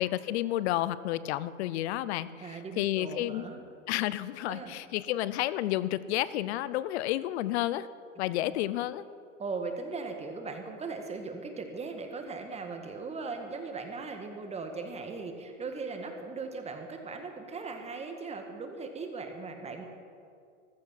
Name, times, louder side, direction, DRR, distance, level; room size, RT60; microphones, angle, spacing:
voice 1, 0.0-3.4 3.9-7.9 8.2-9.0, left 14 dB, 60° left, 17 dB, 0.7 m, -31 dB
voice 2, 2.4-3.6 4.4-4.8 8.4-8.6 9.4-19.8, right 4 dB, 15° right, 5 dB, 1.8 m, -38 dB
15.0 x 13.5 x 5.8 m, 2.3 s
hypercardioid pair, 125°, 37 cm